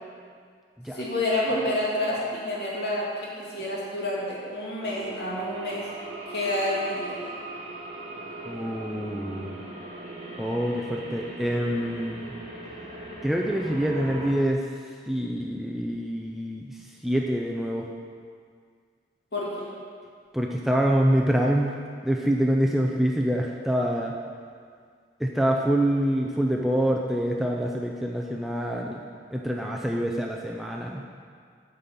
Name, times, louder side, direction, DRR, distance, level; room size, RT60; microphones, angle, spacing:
voice 1, 0.9-5.9 6.3-7.2 19.3-19.7, left 1 dB, 65° left, -6 dB, 2.1 m, -29 dB
sound 1, 4.8-14.3, right 2 dB, 35° right, 1.4 m, -39 dB
voice 2, 8.4-9.6 10.4-12.3 13.2-14.7 15.1-17.9 20.3-24.1 25.2-29.0 29.3-31.0, equal, ahead, -1 dB, 0.4 m, -26 dB
9.0 x 4.2 x 6.9 m, 2.1 s
head